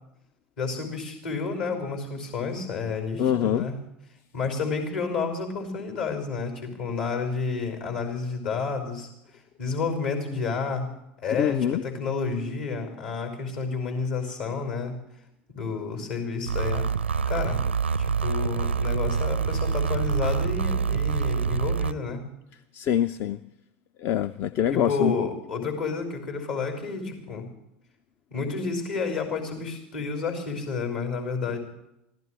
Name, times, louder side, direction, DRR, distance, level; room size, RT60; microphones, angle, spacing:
voice 1, 0.6-3.8 4.3-9.1 9.6-10.9 11.2-15.0 15.5-16.9 17.3-17.6 18.0-22.2 24.7-27.5 28.3-31.6, left 4 dB, 65° left, 4 dB, 5.3 m, -30 dB
voice 2, 3.2-3.7 11.4-11.8 22.7-23.4 24.0-25.1, left 10 dB, 40° left, 15 dB, 0.5 m, -24 dB
sound 1, 16.5-21.9, right 6 dB, 80° right, 0.5 m, -26 dB
26.0 x 16.0 x 3.3 m, 0.81 s
figure-of-eight pair, 75°, 6 cm